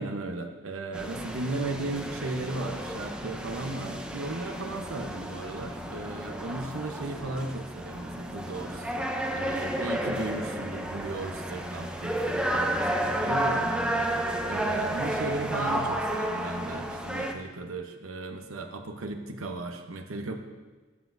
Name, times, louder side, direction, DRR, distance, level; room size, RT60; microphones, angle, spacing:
voice 1, 0.0-8.9 9.3-14.1 14.5-20.4, right 2 dB, 90° right, 5 dB, 0.9 m, -36 dB
sound 1, 0.9-17.3, right 1 dB, 5° right, 0.5 m, -32 dB
14.0 x 9.3 x 2.7 m, 1.3 s
head